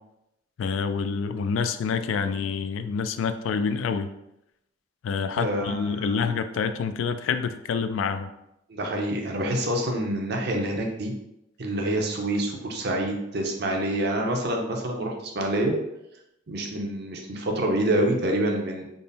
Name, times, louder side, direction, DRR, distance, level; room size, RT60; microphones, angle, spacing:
voice 1, 0.6-4.1 5.0-8.3, left 5 dB, 80° left, 11 dB, 0.3 m, -27 dB
voice 2, 5.4-6.2 8.7-11.1 11.6-15.7 16.5-18.8, right 1 dB, 60° right, 1 dB, 0.7 m, -27 dB
3.6 x 2.0 x 4.0 m, 0.84 s
head